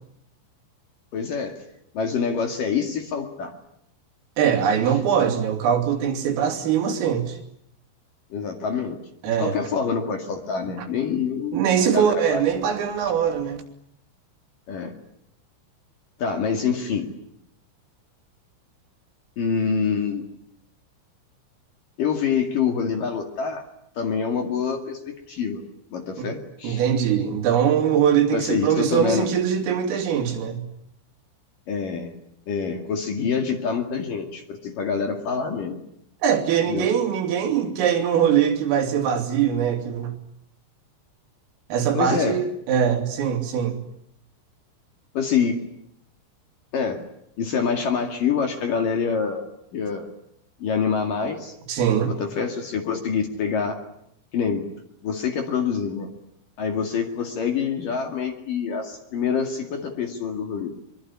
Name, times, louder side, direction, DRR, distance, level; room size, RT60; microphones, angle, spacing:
voice 1, 1.1-1.5 1.9-3.5 8.3-9.0 9.4-12.4 14.7-15.0 16.2-17.1 19.4-20.2 22.0-23.7 24.0-25.6 25.9-26.8 28.3-29.3 31.7-32.1 32.5-35.8 36.7-36.9 41.9-42.4 45.1-45.6 46.7-47.0 47.4-50.1 50.6-51.5 52.1-53.8 54.3-54.7 55.0-56.1 56.6-60.8, left 6 dB, 50° left, 4 dB, 3.2 m, -26 dB
voice 2, 4.4-7.4 9.2-9.6 10.8-10.9 11.5-13.6 26.2-26.3 26.6-30.6 36.2-40.1 41.7-43.8 51.7-52.1, right 8 dB, 75° right, 4 dB, 5.4 m, -22 dB
24.5 x 24.0 x 9.8 m, 0.74 s
omnidirectional pair, 5.9 m